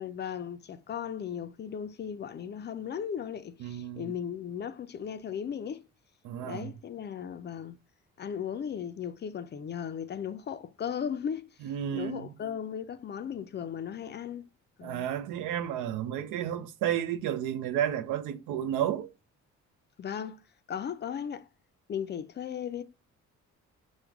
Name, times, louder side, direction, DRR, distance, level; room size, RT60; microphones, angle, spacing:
voice 1, 0.0-5.8 6.4-7.8 8.2-11.5 11.9-14.5 14.8-15.1 20.0-20.4 20.7-21.5 21.9-22.8, left 8 dB, 35° left, 0.4 m, -36 dB
voice 2, 3.6-4.1 6.2-6.7 11.6-12.3 14.8-19.1, right 10 dB, 90° right, 0.5 m, -32 dB
4.5 x 2.1 x 3.4 m
cardioid pair, 90°, 30 cm